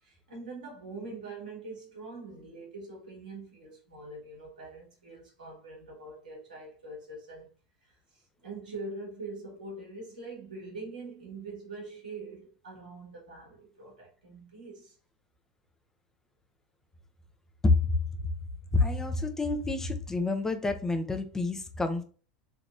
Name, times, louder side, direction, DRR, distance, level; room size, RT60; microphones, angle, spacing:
voice 1, 0.0-7.5 7.8-15.0, right 3 dB, 75° right, 1.7 m, -43 dB
voice 2, 18.7-22.0, left 3 dB, 10° left, 0.6 m, -28 dB
3.4 x 2.9 x 2.6 m
figure-of-eight pair, 85°, 4 cm